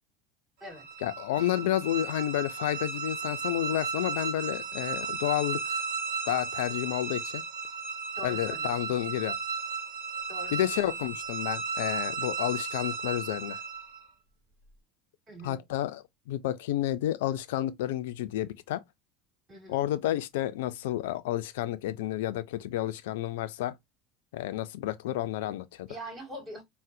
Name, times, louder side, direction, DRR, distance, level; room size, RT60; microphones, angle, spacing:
sound 1, 0.7-14.1, right 5 dB, 65° right, 0.7 m, -35 dB
voice 1, 1.0-5.8 6.3-7.4 8.2-9.4 10.5-13.6 15.4-18.8 19.7-23.8 24.3-25.9, left 13 dB, 70° left, 0.3 m, -30 dB
voice 2, 8.1-8.8 10.3-10.7 11.1-11.2 15.3-15.6 19.5-19.9 25.9-26.6, equal, 30° right, 2.3 m, -43 dB
3.8 x 2.0 x 2.5 m
hypercardioid pair, 70°, 0 cm